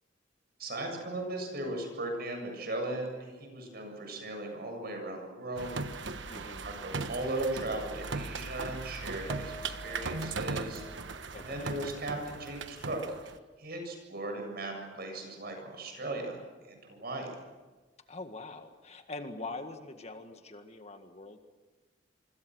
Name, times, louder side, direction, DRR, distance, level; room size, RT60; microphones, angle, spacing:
voice 1, 0.6-5.7 6.0-6.1 6.6-10.8 11.3-17.3, right 2 dB, 60° right, 3 dB, 7.5 m, -37 dB
sound 1, 5.6-13.4, right 3 dB, 85° right, 1.2 m, -38 dB
voice 2, 6.3-6.7 11.3-11.7 18.1-21.4, left 3 dB, 35° left, 6 dB, 1.8 m, -43 dB
Piano, 9.3-13.8 14.1-14.3 14.7-14.8, right 2 dB, 15° right, 1.5 m, -51 dB
26.5 x 25.5 x 6.4 m, 1.3 s
head